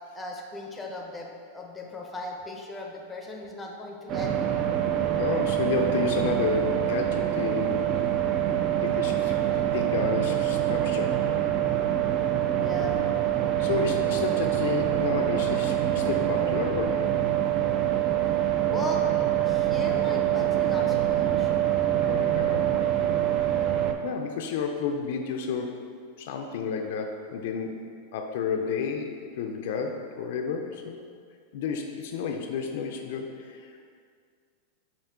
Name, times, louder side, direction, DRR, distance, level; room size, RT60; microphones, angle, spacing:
voice 1, 0.1-4.5 12.6-13.0 18.7-19.0 19.4-21.5, left 2 dB, 10° left, 0 dB, 0.6 m, -38 dB
sound 1, 4.1-23.9, right 11 dB, 40° right, 0.3 m, -25 dB
voice 2, 5.2-7.9 8.8-11.2 13.6-17.1 21.9-22.7 23.7-25.9 26.2-31.0 31.5-33.7, left 6 dB, 70° left, 3 dB, 0.4 m, -31 dB
5.5 x 2.5 x 3.7 m, 2.1 s
supercardioid pair, 130°, 0 cm